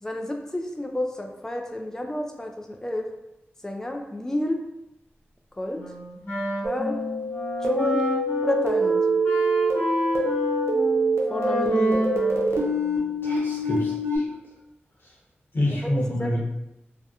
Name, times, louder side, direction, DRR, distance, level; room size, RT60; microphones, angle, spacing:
voice 1, 0.0-3.1 3.6-4.6 5.6-5.8 6.6-7.0 7.6-8.0 8.4-9.0 11.3-12.0 16.0-16.4, left 1 dB, 10° left, 2 dB, 0.4 m, -30 dB
Wind instrument woodwind instrument, 5.7-13.2, equal, 85° left, 1.2 m, -30 dB
sound 1, 6.6-14.2, right 1 dB, 85° right, 0.5 m, -25 dB
voice 2, 13.2-14.3 15.0-15.1 15.5-16.4, left 1 dB, 55° left, -5 dB, 1.0 m, -27 dB
2.8 x 2.1 x 2.4 m, 0.92 s
cardioid pair, 45°, 4 cm